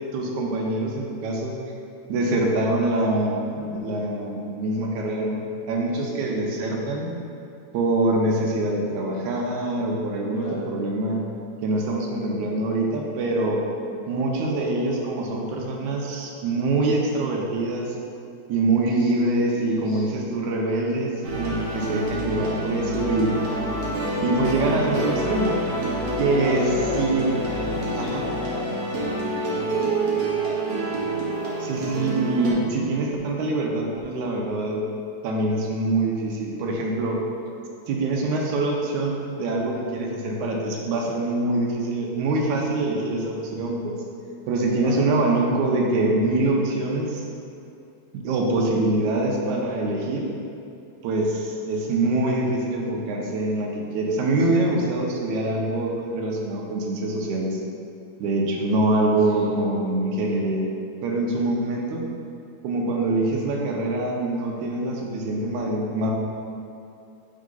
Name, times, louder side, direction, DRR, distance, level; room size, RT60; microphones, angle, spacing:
voice 1, 0.1-1.5 2.1-5.4 5.7-7.1 7.7-11.2 11.6-13.6 14.1-17.9 18.5-21.1 21.4-23.4 24.2-25.6 26.2-26.6 27.0-27.3 27.9-28.2 31.6-34.9 35.2-37.2 37.9-44.0 44.5-47.2 48.1-50.2 51.0-57.6 58.2-60.6 61.0-62.0 62.6-66.1, right 2 dB, 75° right, -1 dB, 2.1 m, -24 dB
voice 2, 5.9-6.3 10.3-10.6 18.9-20.2 26.3-29.9 44.6-45.0 59.3-59.5, left 1 dB, 75° left, -7 dB, 2.3 m, -37 dB
sound 1, 21.2-32.5, right 1 dB, 60° right, 2.1 m, -27 dB
7.6 x 3.7 x 3.9 m, 2.7 s
omnidirectional pair, 3.6 m